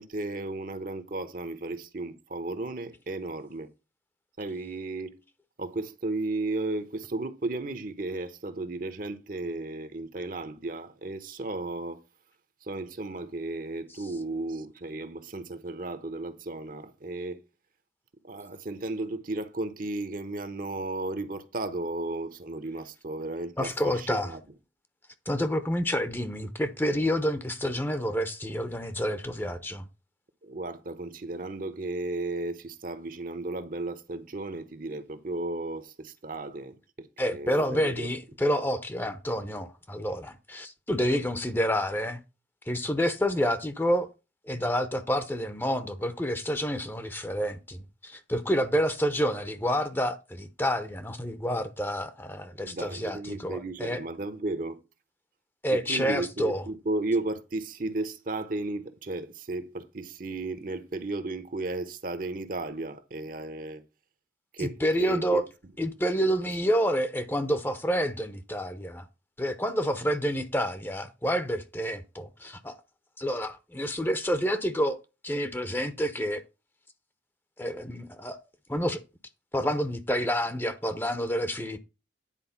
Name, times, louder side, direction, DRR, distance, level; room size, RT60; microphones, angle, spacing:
voice 1, 0.0-3.7 4.4-5.2 5.6-12.0 12.6-17.4 18.2-24.4 30.4-36.8 37.3-38.1 52.6-54.8 55.7-63.8 64.5-65.4, right 2 dB, 45° right, 0.9 m, -34 dB
voice 2, 23.6-24.4 25.3-29.9 37.2-42.2 42.7-44.1 44.5-54.0 55.6-56.6 64.6-65.4 65.8-69.1 69.4-72.8 73.2-75.0 75.2-76.4 77.6-78.4 78.7-79.0 79.5-81.8, equal, 10° left, 0.8 m, -28 dB
10.0 x 4.6 x 5.8 m
head